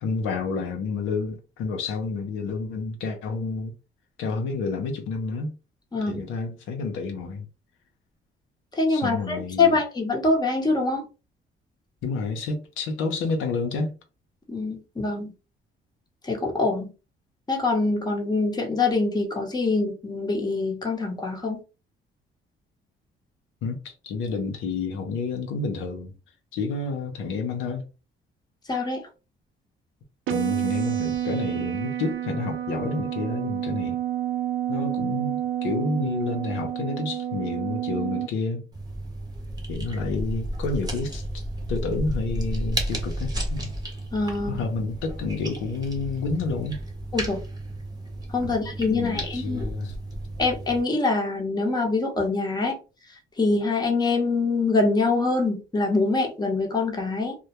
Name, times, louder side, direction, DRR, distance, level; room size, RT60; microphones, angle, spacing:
voice 1, 0.0-3.7 4.2-5.5 6.1-7.5 8.9-9.8 12.0-13.9 23.6-26.1 26.5-27.8 30.3-34.0 34.7-38.7 39.7-41.4 41.7-43.8 44.4-46.8 48.4-50.0, left 4 dB, 85° left, 0.6 m, -29 dB
voice 2, 5.9-6.2 8.7-11.0 14.5-15.3 16.2-16.9 17.5-21.6 28.7-29.0 44.1-44.6 47.1-47.4 48.3-49.7 50.4-52.8 53.4-57.3, left 3 dB, 20° left, 0.8 m, -24 dB
sound 1, 30.3-38.3, right 11 dB, 85° right, 0.5 m, -29 dB
sound 2, 38.7-50.8, right 1 dB, 20° right, 0.8 m, -33 dB
2.2 x 2.1 x 2.8 m
cardioid pair, 90°, 20 cm